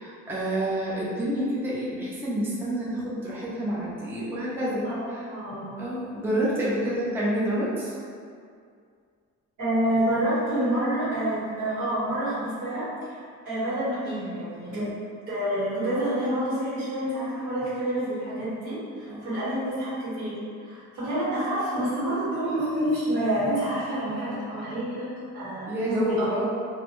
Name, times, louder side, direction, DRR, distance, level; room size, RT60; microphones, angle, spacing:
voice 1, 0.0-5.2 5.8-7.9 14.7-14.9 19.1-19.3 25.7-26.5, right 1 dB, 10° right, -7 dB, 0.3 m, -28 dB
voice 2, 4.8-5.7 9.6-13.2 13.4-14.9 15.3-26.5, right 1 dB, 85° right, -11 dB, 1.4 m, -28 dB
2.5 x 2.1 x 2.9 m, 2.2 s
cardioid pair, 150°, 30 cm